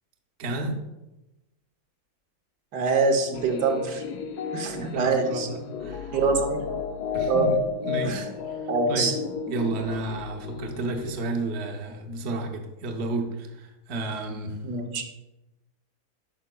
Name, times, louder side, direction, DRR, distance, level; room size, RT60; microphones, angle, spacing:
voice 1, 0.4-0.8 4.7-6.2 7.1-7.6 7.8-8.6 8.9-9.1 9.5-14.6, right 2 dB, 50° right, 3 dB, 0.9 m, -31 dB
voice 2, 2.7-4.0 4.5-5.5 6.1-6.6 7.3-7.5 8.0-8.3 8.7-9.2 14.6-15.0, right 4 dB, 90° right, 4 dB, 1.5 m, -24 dB
sound 1, 3.3-11.1, left 6 dB, 85° left, 1.2 m, -33 dB
9.7 x 5.6 x 2.2 m, 0.99 s
omnidirectional pair, 1.7 m